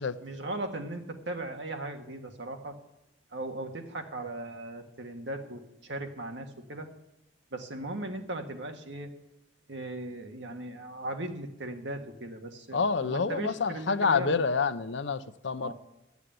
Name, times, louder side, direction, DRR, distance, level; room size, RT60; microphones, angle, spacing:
voice 1, 0.0-2.8 3.3-6.9 7.5-9.1 9.7-14.4 15.6-15.7, right 2 dB, 70° right, 4 dB, 1.6 m, -38 dB
voice 2, 12.7-15.7, left 5 dB, 70° left, 13 dB, 0.6 m, -28 dB
12.5 x 8.2 x 9.0 m, 0.88 s
head